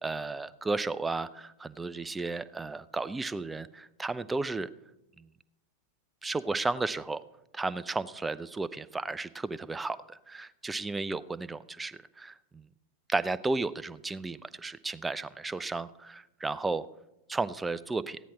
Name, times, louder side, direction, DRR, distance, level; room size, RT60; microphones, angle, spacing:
voice 1, 0.0-4.7 5.2-5.3 6.2-7.2 7.5-10.0 10.3-12.6 13.1-16.9 17.3-18.2, right 3 dB, 10° right, 16 dB, 0.4 m, -33 dB
14.0 x 10.0 x 4.2 m, 0.95 s
figure-of-eight pair, 90°, 0 cm